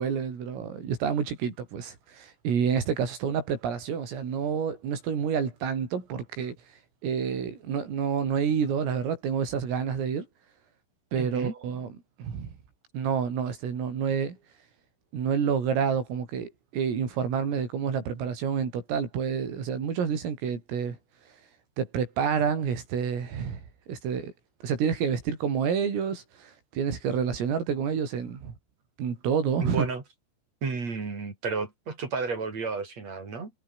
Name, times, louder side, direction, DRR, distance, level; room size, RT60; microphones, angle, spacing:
voice 1, 0.0-6.6 7.0-10.3 11.1-11.9 12.2-12.5 12.9-14.4 15.1-21.0 21.8-23.6 23.9-24.3 24.6-28.5 29.0-29.9, right 7 dB, 85° right, 7.8 m, -28 dB
voice 2, 11.2-11.5 29.6-30.0 30.6-33.5, right 4 dB, 35° right, 5.3 m, -32 dB
omnidirectional pair, 5.8 m